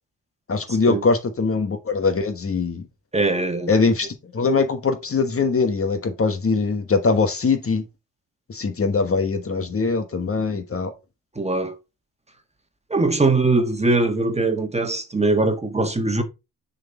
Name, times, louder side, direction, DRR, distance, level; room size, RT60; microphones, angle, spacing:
voice 1, 0.5-2.8 3.7-7.8 8.5-10.9, left 4 dB, 40° left, 1.3 m, -22 dB
voice 2, 3.1-3.7 11.3-11.7 12.9-16.2, right 3 dB, 20° right, 1.5 m, -21 dB
6.4 x 4.2 x 4.3 m
supercardioid pair, 60°, 36 cm